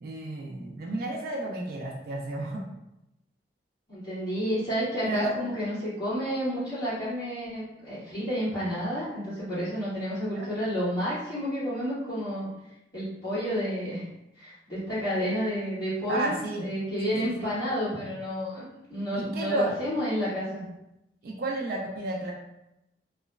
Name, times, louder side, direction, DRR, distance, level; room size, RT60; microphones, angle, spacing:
voice 1, 0.0-2.6 5.0-5.3 10.3-10.5 16.1-16.7 17.0-17.5 19.1-19.7 21.2-22.3, right 2 dB, 55° right, -1 dB, 0.4 m, -32 dB
voice 2, 3.9-12.5 12.9-14.1 14.4-20.7, equal, 25° left, -12 dB, 1.5 m, -30 dB
2.9 x 2.1 x 2.3 m, 0.88 s
head